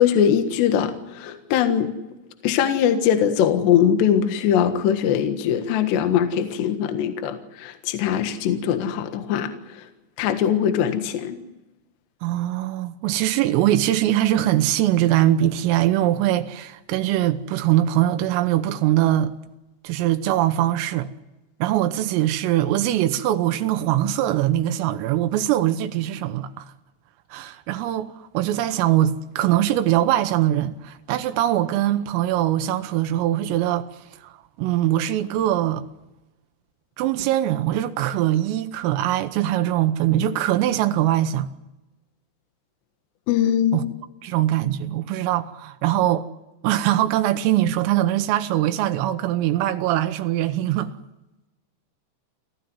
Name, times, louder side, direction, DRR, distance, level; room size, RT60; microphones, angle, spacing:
voice 1, 0.0-1.9 2.4-9.8 10.2-11.4 43.3-43.9, left 9 dB, 65° left, 3.5 m, -21 dB
voice 2, 12.2-19.3 19.8-21.1 21.6-26.7 27.3-33.9 34.2-34.3 34.6-35.8 37.0-41.5 43.7-43.9 44.2-46.3 46.6-50.9, right 13 dB, 90° right, 3.7 m, -22 dB
28.5 x 15.0 x 9.8 m
omnidirectional pair, 5.8 m